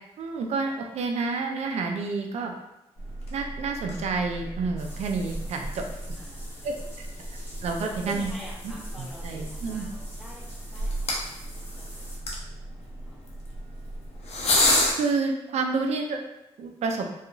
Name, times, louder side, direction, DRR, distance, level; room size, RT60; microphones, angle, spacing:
voice 1, 0.2-2.5 3.3-5.9 6.6-6.7 7.6-8.3 8.6-8.7 9.0-9.9 14.9-16.2 16.6-17.1, right 4 dB, 75° right, 3 dB, 0.4 m, -29 dB
sound 1, 3.0-14.9, left 1 dB, 70° left, 0.7 m, -31 dB
sound 2, 4.8-12.2, equal, 20° left, 1.2 m, -47 dB
voice 2, 6.2-7.3 7.8-10.4 10.7-12.0 12.3-12.4 12.8-13.2, equal, ahead, -4 dB, 0.4 m, -48 dB
2.8 x 2.3 x 2.5 m, 0.91 s
cardioid pair, 90°, 11 cm